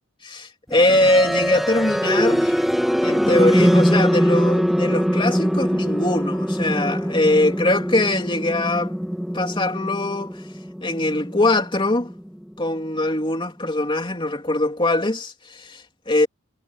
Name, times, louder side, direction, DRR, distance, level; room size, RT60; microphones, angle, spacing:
voice 1, 0.2-2.6 3.0-8.9 9.3-10.3 10.8-12.1 12.6-16.3, left 2 dB, 25° left, 3.1 m, -22 dB
sound 1, 0.7-12.6, equal, ahead, 2.0 m, -22 dB
head